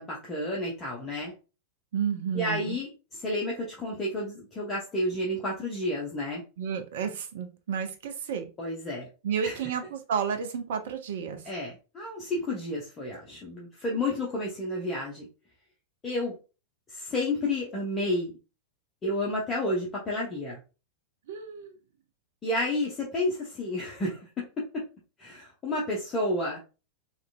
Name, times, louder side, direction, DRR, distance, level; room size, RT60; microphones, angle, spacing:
voice 1, 0.0-1.3 2.3-6.4 8.6-9.1 9.4-9.6 11.4-15.3 16.0-16.3 16.9-18.3 19.0-20.6 22.4-24.8 25.2-26.6, left 1 dB, 20° left, -3 dB, 0.7 m, -31 dB
voice 2, 1.9-2.8 6.6-8.5 9.2-11.4 21.3-21.8, right 7 dB, 55° right, 6 dB, 0.4 m, -31 dB
2.9 x 2.5 x 2.2 m, 0.31 s
figure-of-eight pair, 90°, 0 cm